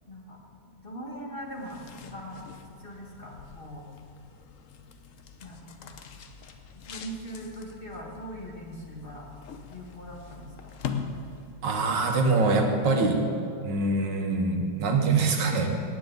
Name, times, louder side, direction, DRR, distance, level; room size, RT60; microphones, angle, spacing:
voice 1, 0.1-0.4 0.6-2.4 2.8-3.9 5.4-6.0 6.7-9.3 9.7-10.7, right 1 dB, 30° left, -1 dB, 1.7 m, -41 dB
sound 1, 1.4-11.8, left 6 dB, 55° left, 1.0 m, -42 dB
voice 2, 11.6-13.2 13.6-15.9, right 3 dB, 85° right, 3 dB, 1.9 m, -24 dB
18.0 x 9.4 x 3.9 m, 2.5 s
omnidirectional pair, 1.9 m